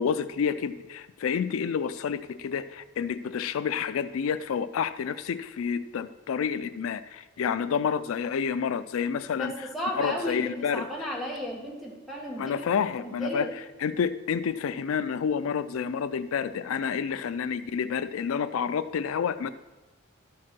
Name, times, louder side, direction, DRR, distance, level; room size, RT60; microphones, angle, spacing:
voice 1, 0.0-9.5 10.0-10.9 12.4-13.5 13.8-19.5, left 7 dB, 80° left, 12 dB, 0.4 m, -29 dB
voice 2, 9.3-12.5 13.0-13.5, equal, ahead, -2 dB, 1.4 m, -34 dB
12.0 x 4.8 x 5.9 m, 1.2 s
head